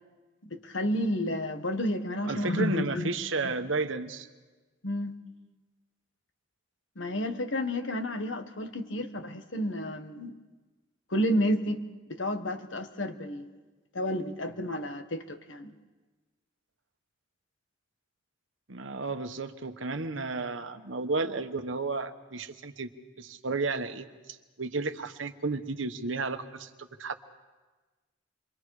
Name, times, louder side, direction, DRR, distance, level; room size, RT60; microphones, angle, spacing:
voice 1, 0.5-3.1 3.4-3.5 4.8-5.2 6.9-10.4 11.1-13.5 13.9-15.7, equal, 70° left, 8 dB, 1.6 m, -31 dB
voice 2, 2.2-4.3 18.7-22.9 23.2-24.1 24.6-26.7 27.0-27.1, right 3 dB, 75° right, 9 dB, 1.2 m, -32 dB
29.0 x 23.5 x 4.9 m, 1.3 s
head